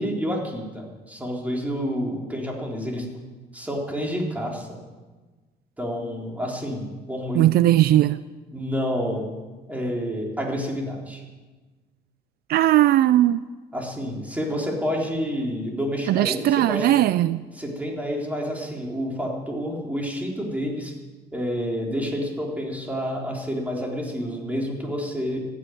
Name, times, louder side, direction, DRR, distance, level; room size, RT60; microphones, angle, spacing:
voice 1, 0.0-3.1 3.5-4.8 5.8-7.5 8.5-9.4 9.7-11.2 13.7-17.0 17.5-20.9 21.3-25.4, equal, 10° right, -1 dB, 3.9 m, -29 dB
voice 2, 7.3-8.2 12.5-13.4 16.1-17.4, right 14 dB, 65° right, 15 dB, 0.5 m, -18 dB
14.5 x 10.0 x 9.3 m, 1.3 s
cardioid pair, 110°, 17 cm